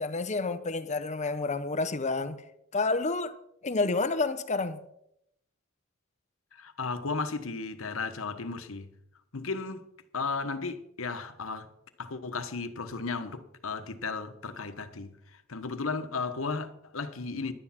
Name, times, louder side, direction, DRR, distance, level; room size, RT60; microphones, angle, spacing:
voice 1, 0.0-2.4 2.7-3.4 3.6-4.8, left 3 dB, 35° left, 0.8 m, -29 dB
voice 2, 6.5-8.9 9.3-9.8 10.1-11.7 12.0-17.5, left 4 dB, 75° left, 1.1 m, -35 dB
11.5 x 9.6 x 5.8 m
head